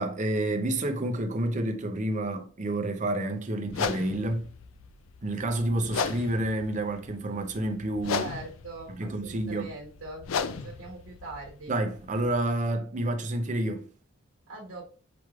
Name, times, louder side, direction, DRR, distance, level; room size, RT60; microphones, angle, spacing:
voice 1, 0.0-4.5 5.2-8.3 9.0-9.7 11.7-13.8, right 1 dB, 35° right, 0.6 m, -29 dB
sound 1, 3.7-12.4, left 6 dB, 65° left, 0.4 m, -36 dB
voice 2, 8.0-11.7 14.5-14.9, right 3 dB, 80° right, 1.1 m, -42 dB
6.0 x 3.1 x 2.4 m
head